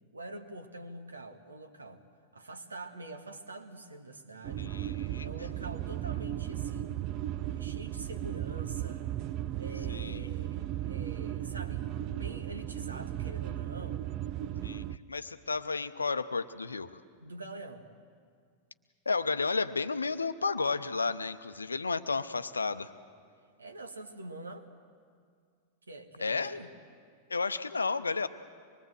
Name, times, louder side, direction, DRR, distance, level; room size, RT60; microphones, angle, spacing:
voice 1, 0.1-2.0 2.3-7.1 7.6-9.1 9.6-14.1 17.2-17.9 23.6-24.7 25.9-26.7, right 2 dB, 75° right, 6 dB, 1.5 m, -45 dB
sound 1, 4.4-15.0, right 13 dB, 40° right, 0.5 m, -36 dB
voice 2, 4.6-5.3 9.9-10.3 14.6-17.0 19.1-22.9 26.2-26.5 27.3-28.3, left 4 dB, 75° left, 12 dB, 0.7 m, -32 dB
25.0 x 22.0 x 7.9 m, 2.1 s
figure-of-eight pair, 90°, 0 cm